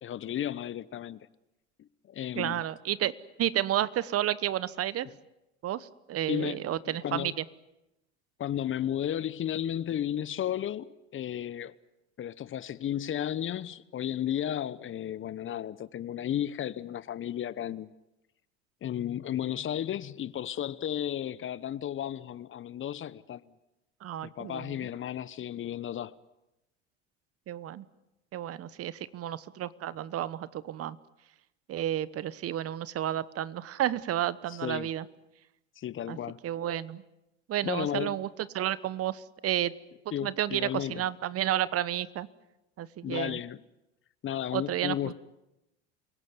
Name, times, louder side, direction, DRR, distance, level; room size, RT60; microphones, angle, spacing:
voice 1, 0.0-1.3 1.8-2.6 6.3-7.4 8.4-11.7 12.2-17.9 18.8-23.4 24.2-26.2 34.5-34.9 35.8-36.4 37.6-38.3 40.1-41.1 43.0-43.6 44.2-45.1, left 10 dB, 35° left, 1.0 m, -34 dB
voice 2, 2.3-3.1 3.4-5.1 5.6-7.4 24.0-24.8 27.5-27.8 28.3-31.0 31.7-35.0 36.1-36.2 36.4-37.0 37.5-38.3 38.5-39.7 40.2-42.3 42.8-43.4 44.5-45.1, right 12 dB, 45° right, 1.1 m, -31 dB
28.0 x 17.5 x 9.5 m
hypercardioid pair, 75°, 33 cm